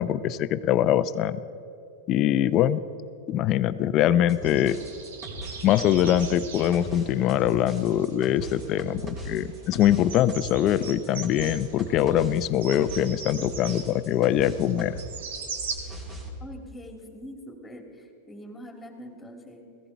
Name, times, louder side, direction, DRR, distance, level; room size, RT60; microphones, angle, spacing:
voice 1, 0.0-1.4 2.1-2.8 3.3-4.8 5.6-15.0, left 11 dB, 40° left, 14 dB, 0.6 m, -23 dB
sound 1, 4.3-15.1 15.3-16.3, right 2 dB, 25° right, 2.9 m, -39 dB
sound 2, 4.4-15.8, right 5 dB, 75° right, 1.6 m, -41 dB
voice 2, 16.4-19.8, equal, 10° left, 3 dB, 2.6 m, -43 dB
16.0 x 15.0 x 4.6 m, 2.8 s
hypercardioid pair, 110°, 0 cm